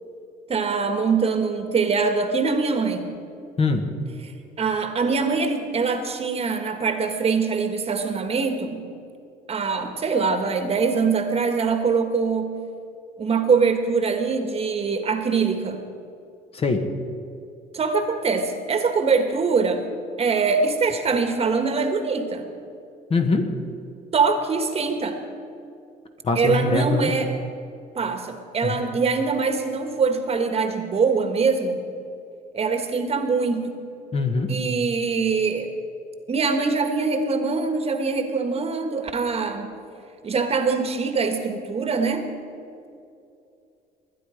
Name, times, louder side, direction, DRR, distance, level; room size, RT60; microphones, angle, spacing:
voice 1, 0.5-3.1 4.6-8.9 9.5-12.6 13.2-15.8 17.7-19.9 20.2-22.5 24.1-25.2 26.3-27.3 27.9-31.8 32.5-33.8 34.5-35.7 36.3-39.8 40.2-42.3, right 4 dB, 35° right, 6 dB, 1.5 m, -23 dB
voice 2, 3.6-3.9 16.5-16.9 23.1-23.5 26.2-27.1 28.6-28.8 34.1-34.5, left 3 dB, 35° left, 5 dB, 1.5 m, -22 dB
21.5 x 9.8 x 5.1 m, 2.5 s
cardioid pair, 110°, 17 cm